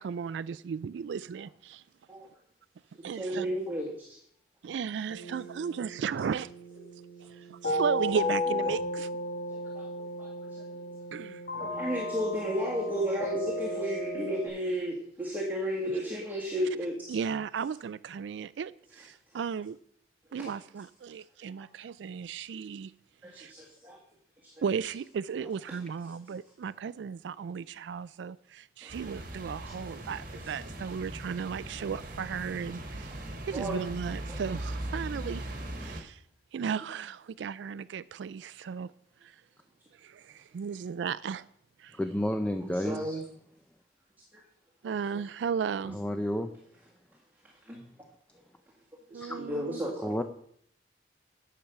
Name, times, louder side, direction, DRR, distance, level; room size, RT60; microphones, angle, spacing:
voice 1, 0.0-1.8 3.0-3.5 4.6-6.5 7.5-9.1 11.1-11.4 17.1-19.8 20.3-22.9 23.4-23.5 24.6-33.1 33.5-35.5 35.8-36.2 36.5-38.9 40.0-41.4 41.8-41.9 44.8-46.0 49.1-49.8, right 6 dB, 85° right, 0.3 m, -35 dB
voice 2, 3.1-4.1 8.1-8.2 9.5-10.3 10.6-10.7 11.5-17.0 19.0-19.1 20.4-20.8 23.2-24.0 24.6-24.9 25.4-25.8 28.8-29.0 30.4-30.5 33.5-33.8 34.3-34.4 42.6-43.2 44.8-45.2 45.8-45.9 47.7-47.8 49.1-50.1, equal, 10° right, 1.9 m, -34 dB
sound 1, 5.1-14.5, left 1 dB, 60° left, 2.2 m, -34 dB
sound 2, 28.9-36.0, right 1 dB, 50° right, 1.4 m, -39 dB
voice 3, 41.9-43.2 45.9-46.5 49.2-49.4 50.0-50.2, equal, 5° left, 0.5 m, -31 dB
10.5 x 6.8 x 5.8 m
head